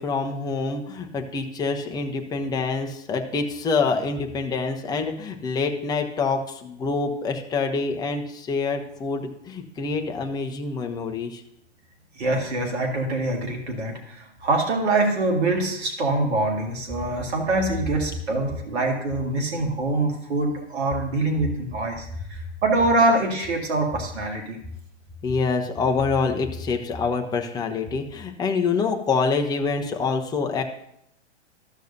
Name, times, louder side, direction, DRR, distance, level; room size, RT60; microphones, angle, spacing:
voice 1, 0.0-11.4 25.2-30.6, left 4 dB, 10° left, 4 dB, 0.7 m, -26 dB
voice 2, 12.2-24.6, right 2 dB, 65° right, 1 dB, 2.0 m, -24 dB
13.5 x 6.5 x 2.7 m, 0.75 s
hypercardioid pair, 120°, 35 cm